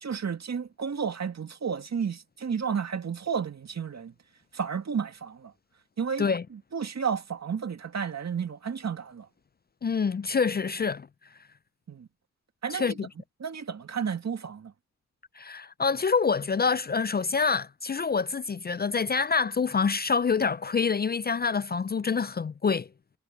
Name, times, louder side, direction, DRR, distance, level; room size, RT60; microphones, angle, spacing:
voice 1, 0.0-4.1 4.5-5.5 6.0-9.3 11.9-12.1 12.6-13.0 13.4-14.7, right 6 dB, 65° right, 2.2 m, -32 dB
voice 2, 9.8-11.1 12.7-13.1 15.4-22.9, left 5 dB, 35° left, 0.4 m, -26 dB
cardioid pair, 50°, 29 cm